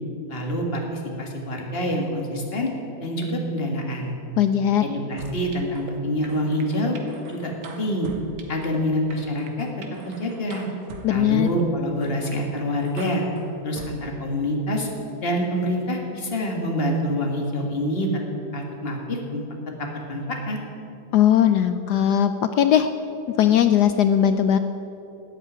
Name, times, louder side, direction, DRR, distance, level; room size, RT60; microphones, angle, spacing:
voice 1, 0.3-2.7 3.0-4.1 4.8-7.0 7.3-8.1 8.5-9.7 10.0-10.7 11.1-13.2 13.6-14.9 15.2-18.1 18.5-19.4 19.8-20.6, equal, 30° left, 1 dB, 2.0 m, -26 dB
voice 2, 4.4-4.8 11.0-11.5 21.1-22.9 23.4-24.6, left 10 dB, 75° left, 10 dB, 1.0 m, -19 dB
sound 1, 5.2-5.9 6.2-8.8 9.1-11.1 11.5-11.6 12.0-12.4 12.8-13.9, right 4 dB, 80° right, 2.1 m, -42 dB
13.0 x 8.3 x 9.4 m, 2.8 s
omnidirectional pair, 2.1 m